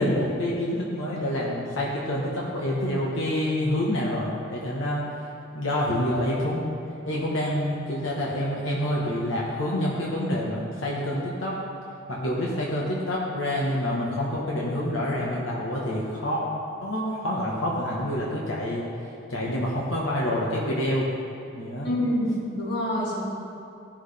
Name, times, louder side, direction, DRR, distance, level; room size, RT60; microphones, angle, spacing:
voice 1, 0.0-5.0 5.5-6.6 7.1-11.6 12.1-16.4 16.8-18.8 19.3-21.1 21.5-21.9, left 1 dB, 80° left, -5 dB, 1.2 m, -27 dB
voice 2, 21.8-23.2, equal, 55° left, -4 dB, 1.9 m, -26 dB
14.0 x 6.2 x 3.3 m, 2.6 s
head